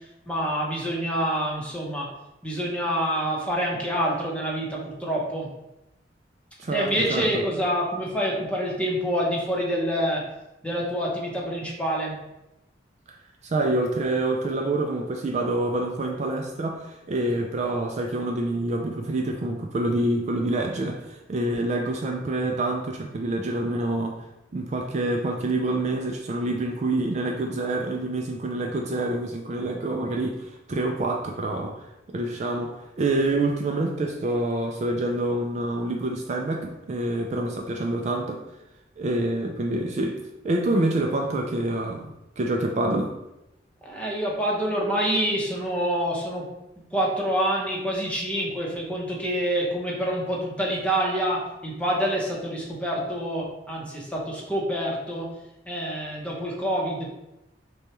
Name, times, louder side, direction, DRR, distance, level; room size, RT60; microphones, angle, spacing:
voice 1, 0.3-2.1 2.4-5.5 6.7-10.2 10.6-12.2 43.8-46.5 46.9-55.3 55.7-57.1, equal, 5° left, -3 dB, 0.8 m, -27 dB
voice 2, 6.6-7.4 13.1-13.2 13.4-24.3 24.5-38.4 39.0-43.1, right 2 dB, 40° right, 2 dB, 0.4 m, -27 dB
6.2 x 2.3 x 3.0 m, 0.93 s
head